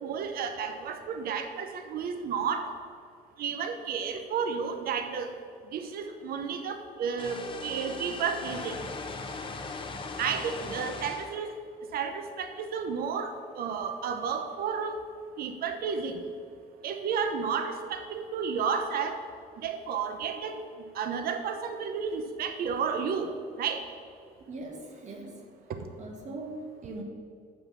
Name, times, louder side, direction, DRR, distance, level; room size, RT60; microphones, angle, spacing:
voice 1, 0.0-2.7 3.4-5.3 5.7-8.7 10.2-11.5 11.9-15.0 15.4-16.1 16.8-19.2 19.6-20.5 20.9-23.3 23.6-23.8, right 6 dB, 65° right, 7 dB, 0.8 m, -32 dB
sound 1, 7.2-11.3, left 4 dB, 30° left, 1.0 m, -39 dB
voice 2, 10.3-10.8 24.4-25.5 26.0-27.0, right 2 dB, 45° right, 1 dB, 1.6 m, -41 dB
6.7 x 5.9 x 6.8 m, 2.2 s
cardioid pair, 110°, 17 cm